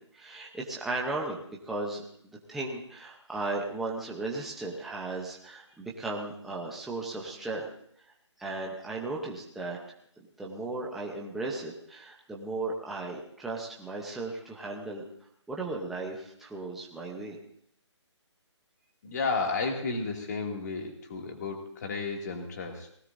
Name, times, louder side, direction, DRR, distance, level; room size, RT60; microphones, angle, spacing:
voice 1, 0.0-1.4 1.6-2.0 2.5-7.7 8.0-8.1 8.4-9.8 10.4-15.0 15.5-17.4, right 2 dB, ahead, -3 dB, 0.8 m, -36 dB
voice 2, 19.0-22.9, left 4 dB, 35° left, 2 dB, 2.4 m, -32 dB
19.5 x 16.5 x 2.6 m, 0.68 s
hypercardioid pair, 170°, 15 cm